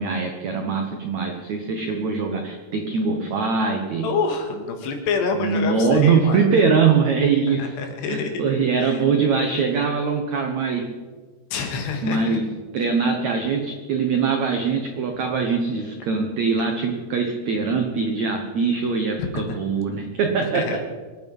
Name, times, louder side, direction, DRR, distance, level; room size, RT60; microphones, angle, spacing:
voice 1, 0.0-4.1 5.3-7.7 8.1-10.9 12.0-12.4 12.7-20.8, right 5 dB, 75° right, 3 dB, 1.6 m, -22 dB
voice 2, 4.0-6.4 7.5-8.3 8.8-9.0 11.5-12.4 19.2-19.5 20.4-20.8, left 5 dB, 75° left, 4 dB, 3.9 m, -27 dB
24.5 x 9.5 x 5.5 m, 1.5 s
omnidirectional pair, 5.0 m